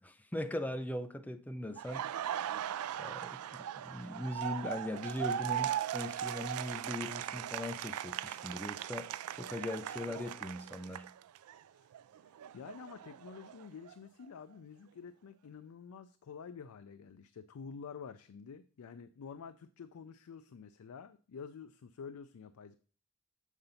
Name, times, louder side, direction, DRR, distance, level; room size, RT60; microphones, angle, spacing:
voice 1, 0.0-2.5 3.0-9.1 9.4-11.1, left 1 dB, 5° left, 0.4 m, -40 dB
Laughter, 1.8-11.6 11.9-13.9, right 10 dB, 80° right, 0.3 m, -39 dB
voice 2, 12.5-22.8, left 6 dB, 75° left, 0.4 m, -49 dB
7.2 x 3.9 x 5.4 m
head